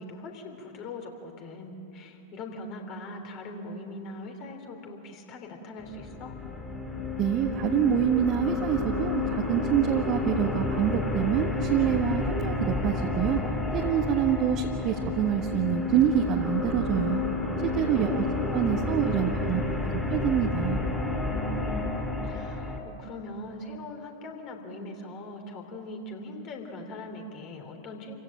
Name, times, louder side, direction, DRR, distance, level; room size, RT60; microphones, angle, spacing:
voice 1, 0.0-6.3 17.7-18.6 19.0-19.8 21.2-28.1, left 1 dB, 40° left, 3 dB, 3.6 m, -41 dB
sound 1, 5.8-22.8, left 3 dB, 5° left, 3.4 m, -30 dB
voice 2, 7.2-13.4 13.7-17.2 17.6-18.2 18.5-19.6 20.1-20.8, right 9 dB, 40° right, 1 dB, 1.5 m, -26 dB
28.5 x 16.5 x 8.9 m, 2.8 s
figure-of-eight pair, 90°, 0 cm